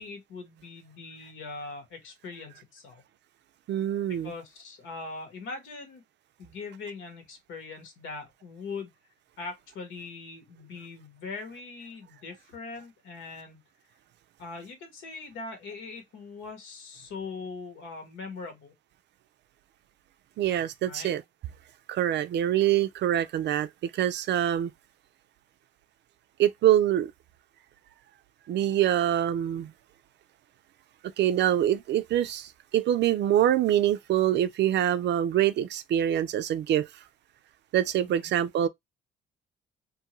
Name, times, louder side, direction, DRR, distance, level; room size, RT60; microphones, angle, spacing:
voice 1, 0.0-3.0 4.1-6.0 6.4-8.9 9.4-13.6 14.4-18.7 20.8-21.1 38.0-38.3, left 4 dB, 85° left, 1.3 m, -41 dB
voice 2, 3.7-4.3 20.4-21.2 21.9-24.7 26.4-27.1 28.5-29.7 31.2-36.9 37.7-38.7, right 11 dB, 60° right, 0.4 m, -25 dB
2.7 x 2.4 x 2.9 m
cardioid pair, 90°, 20 cm